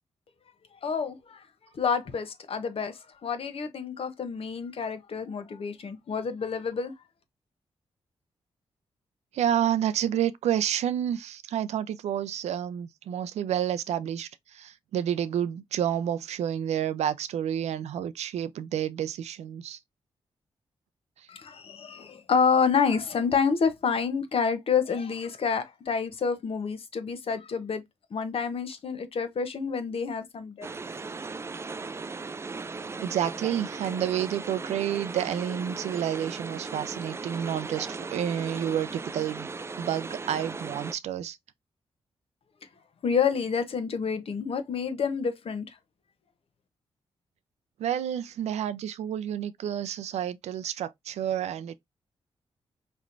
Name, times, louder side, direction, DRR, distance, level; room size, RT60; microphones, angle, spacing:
voice 1, 0.8-1.4 1.7-6.9 21.3-27.8 28.1-30.7 43.0-45.7, left 6 dB, 60° left, 0.9 m, -28 dB
voice 2, 9.3-14.3 14.5-19.8 33.0-39.5 39.8-41.4 47.8-51.7, right 10 dB, 85° right, 0.4 m, -29 dB
sound 1, 30.6-41.0, right 4 dB, 25° right, 0.3 m, -37 dB
4.3 x 3.1 x 2.5 m
cardioid pair, 70°, 11 cm